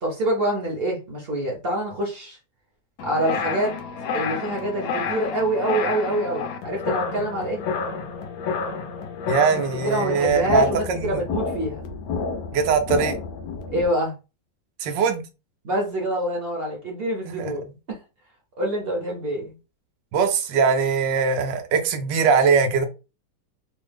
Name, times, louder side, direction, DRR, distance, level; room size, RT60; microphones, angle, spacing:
voice 1, 0.0-2.4 3.0-3.7 4.1-7.6 9.5-11.8 13.7-14.1 15.6-18.0 18.6-19.6, right 1 dB, 50° right, 0.7 m, -26 dB
sound 1, 3.0-13.9, left 5 dB, 70° left, 0.9 m, -30 dB
voice 2, 9.3-11.2 12.5-13.2 14.8-15.3 17.3-17.7 20.1-22.9, right 5 dB, 80° right, 1.3 m, -21 dB
3.2 x 2.0 x 3.3 m
omnidirectional pair, 2.0 m